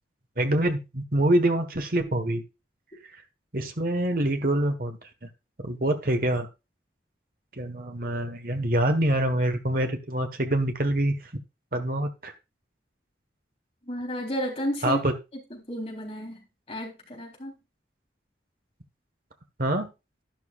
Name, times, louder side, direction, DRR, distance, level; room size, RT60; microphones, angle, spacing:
voice 1, 0.4-2.4 3.5-5.3 5.6-6.5 7.6-11.2 11.7-12.3 14.8-15.1 19.6-19.9, right 1 dB, 50° right, 6 dB, 1.5 m, -25 dB
voice 2, 13.9-15.0 15.5-17.5, equal, 35° left, -1 dB, 3.8 m, -32 dB
11.5 x 11.0 x 2.5 m, 0.27 s
head